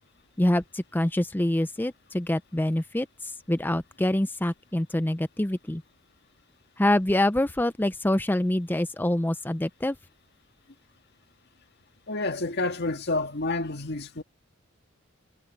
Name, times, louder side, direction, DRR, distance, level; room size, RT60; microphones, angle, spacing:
voice 1, 0.4-5.8 6.8-10.0, left 1 dB, 10° left, 0.5 m, -26 dB
voice 2, 12.1-14.2, left 2 dB, 55° left, 1.8 m, -29 dB
head